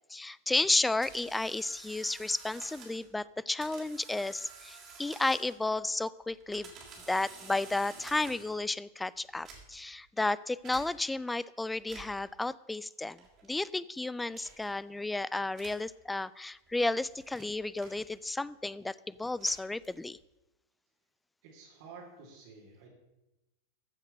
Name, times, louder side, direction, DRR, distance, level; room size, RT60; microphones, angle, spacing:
voice 1, 0.1-6.7 7.1-20.2, left 2 dB, 5° left, 20 dB, 0.4 m, -32 dB
sound 1, 0.8-3.1 3.6-5.7 6.3-8.6 9.3-9.9 10.6-10.9 11.8-12.3 13.2-13.5 14.3-14.7 15.5-15.9 16.7-18.4 19.2-20.2, right 4 dB, 30° right, 3.6 m, -51 dB
voice 2, 21.4-22.9, right 4 dB, 50° right, -4 dB, 3.3 m, -51 dB
14.0 x 6.6 x 6.7 m, 0.95 s
figure-of-eight pair, 90°, 0 cm